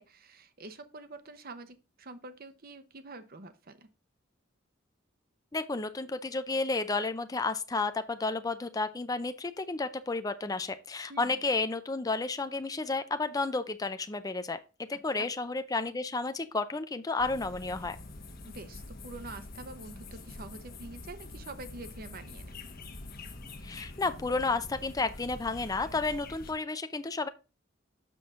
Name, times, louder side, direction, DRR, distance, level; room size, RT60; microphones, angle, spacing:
voice 1, 0.0-3.9 11.1-11.3 14.9-15.3 18.4-22.5, right 2 dB, 50° right, 0.9 m, -46 dB
voice 2, 5.5-14.6 14.9-18.0 23.6-27.3, left 3 dB, 20° left, 0.5 m, -32 dB
sound 1, 17.2-26.5, left 2 dB, 50° left, 1.1 m, -45 dB
7.0 x 6.1 x 3.6 m
head